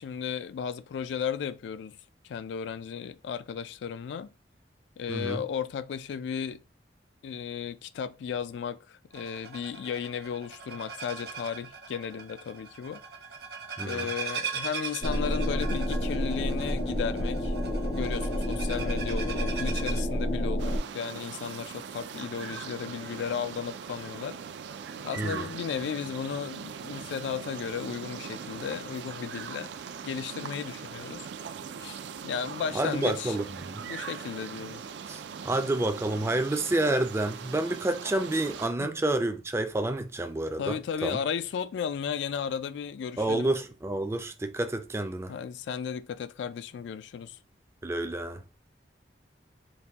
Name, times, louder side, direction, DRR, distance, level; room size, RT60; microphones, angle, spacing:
voice 1, 0.0-2.0 2.3-4.3 5.0-6.6 7.2-13.0 13.8-17.5 17.9-24.4 25.0-29.7 30.0-31.2 31.8-33.4 33.8-34.8 38.8-38.9 40.6-43.5 45.3-47.4, left 7 dB, 80° left, 0.3 m, -34 dB
voice 2, 5.1-5.4 13.8-14.1 25.2-25.5 32.7-33.9 35.1-41.2 43.2-45.3 47.8-48.4, right 2 dB, 15° right, 0.4 m, -29 dB
sound 1, 9.1-20.0, right 5 dB, 60° right, 0.7 m, -40 dB
sound 2, 15.0-20.8, equal, 45° left, 0.6 m, -29 dB
sound 3, 20.6-38.7, right 6 dB, 80° right, 0.4 m, -41 dB
4.1 x 2.2 x 3.4 m
head